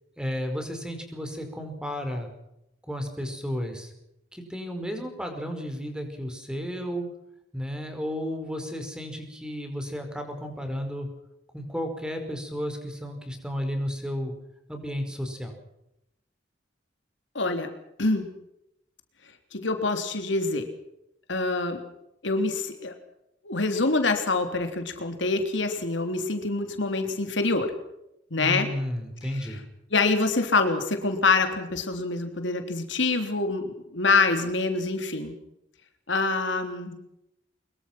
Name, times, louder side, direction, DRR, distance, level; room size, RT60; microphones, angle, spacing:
voice 1, 0.2-2.3 2.8-3.9 4.3-7.0 7.5-11.1 11.5-14.3 14.7-15.5 28.4-29.6, equal, 5° right, 5 dB, 5.1 m, -33 dB
voice 2, 17.4-17.7 18.0-18.3 19.5-20.7 21.3-21.8 22.2-22.9 23.4-27.7 28.3-28.7 29.3-29.6 29.9-35.3 36.1-37.0, left 3 dB, 75° left, 6 dB, 3.5 m, -25 dB
24.5 x 23.0 x 6.1 m, 0.83 s
head